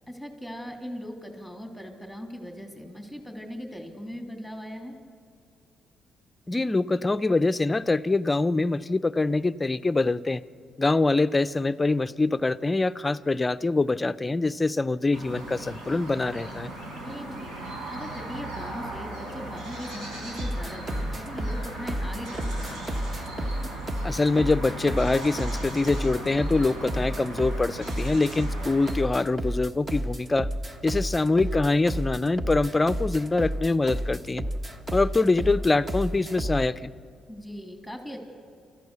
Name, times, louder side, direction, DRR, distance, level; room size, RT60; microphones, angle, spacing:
voice 1, 0.1-5.0 17.0-23.1 28.6-28.7 37.3-38.2, equal, 5° right, 3 dB, 3.2 m, -39 dB
voice 2, 6.5-10.4 10.8-16.7 24.0-30.5 30.8-34.4 34.9-36.9, left 3 dB, 20° left, 14 dB, 0.5 m, -24 dB
sound 1, 15.1-28.9, right 1 dB, 80° right, 4.8 m, -38 dB
sound 2, 20.4-36.7, equal, 25° right, 1.3 m, -31 dB
28.5 x 14.0 x 6.9 m, 2.2 s
cardioid pair, 90°, 0 cm